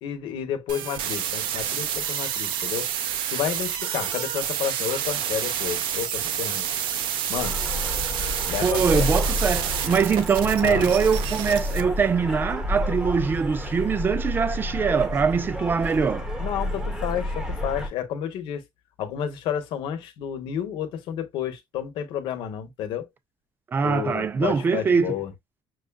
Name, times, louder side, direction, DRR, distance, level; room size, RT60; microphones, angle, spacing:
voice 1, 0.0-2.9 3.3-6.7 7.3-7.6 8.5-9.1 10.6-10.9 16.4-18.6 19.0-23.1 23.8-25.3, left 9 dB, 75° left, 0.9 m, -31 dB
sound 1, 0.7-11.8, right 9 dB, 75° right, 0.6 m, -29 dB
sound 2, 7.4-17.9, left 1 dB, 5° right, 0.8 m, -30 dB
voice 2, 8.6-16.3 23.7-25.2, right 6 dB, 25° right, 0.4 m, -23 dB
6.2 x 2.3 x 2.2 m
cardioid pair, 160°, 9 cm